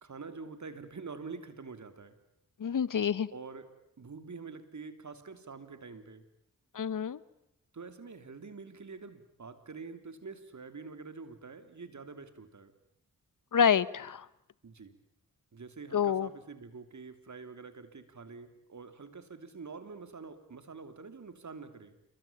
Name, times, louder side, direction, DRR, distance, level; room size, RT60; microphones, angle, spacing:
voice 1, 0.0-2.1 3.3-3.7 4.0-6.2 7.7-12.7 14.6-14.9 15.5-22.0, right 4 dB, 55° right, 10 dB, 3.2 m, -46 dB
voice 2, 2.6-3.3 6.7-7.2 13.5-14.3 15.9-16.3, left 7 dB, 65° left, 18 dB, 1.1 m, -27 dB
28.0 x 23.0 x 8.7 m, 0.80 s
cardioid pair, 55°, 35 cm